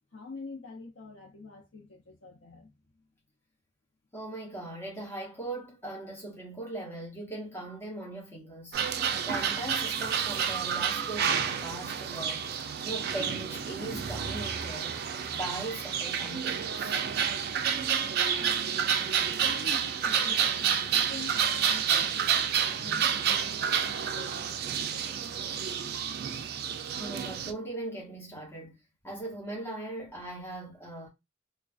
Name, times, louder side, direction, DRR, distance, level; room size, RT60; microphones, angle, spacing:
voice 1, 0.1-2.7 18.3-25.5, left 3 dB, 80° left, 0.6 m, -47 dB
voice 2, 4.1-8.8 9.3-12.5 12.8-15.0 15.3-17.0 26.8-28.8 29.0-31.1, right 2 dB, 15° left, 0.9 m, -39 dB
sound 1, 8.7-27.5, right 7 dB, 55° right, 0.3 m, -29 dB
2.3 x 2.2 x 2.4 m
head